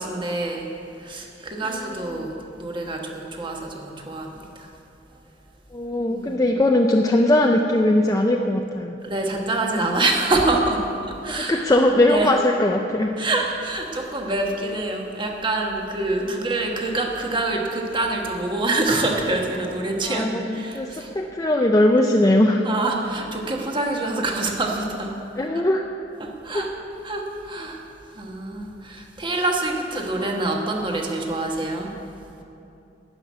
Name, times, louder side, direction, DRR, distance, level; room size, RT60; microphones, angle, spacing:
voice 1, 0.0-4.7 6.1-6.5 9.0-11.7 12.0-12.4 13.2-21.1 22.6-25.1 25.5-25.6 26.2-26.7 27.0-31.9, right 2 dB, 25° right, 1 dB, 1.3 m, -26 dB
voice 2, 5.7-8.9 11.3-13.1 20.1-20.9 21.2-22.6 25.4-25.8 26.5-26.6, left 1 dB, 20° left, 1 dB, 0.5 m, -19 dB
12.5 x 5.9 x 9.3 m, 2.8 s
head